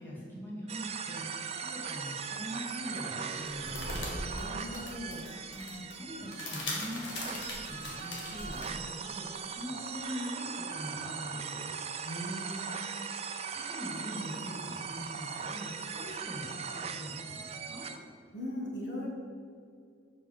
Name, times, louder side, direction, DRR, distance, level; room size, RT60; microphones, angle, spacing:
voice 1, 0.0-3.9 5.5-11.8 13.5-17.8, equal, 10° left, -5 dB, 2.4 m, -42 dB
sound 1, 0.7-18.0, right 6 dB, 35° right, 0.5 m, -39 dB
sound 2, 3.3-8.7, left 1 dB, 90° left, 2.1 m, -40 dB
voice 2, 4.1-5.3 12.0-12.8 18.3-19.1, equal, 70° left, -2 dB, 1.7 m, -39 dB
7.8 x 5.6 x 6.7 m, 2.3 s
head